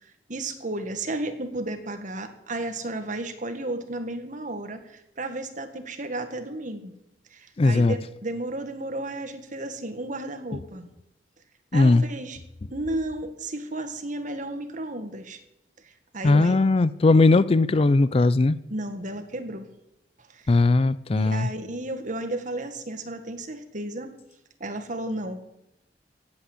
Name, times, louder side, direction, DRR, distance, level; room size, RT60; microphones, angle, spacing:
voice 1, 0.3-6.9 7.3-10.9 11.7-12.4 12.7-15.4 15.8-16.6 18.7-19.7 20.3-20.5 21.2-24.1 24.6-25.4, right 2 dB, 45° right, 7 dB, 1.7 m, -33 dB
voice 2, 7.6-7.9 11.7-12.0 16.2-18.6 20.5-21.5, left 3 dB, 35° left, 17 dB, 0.4 m, -19 dB
16.5 x 8.6 x 8.0 m, 0.85 s
head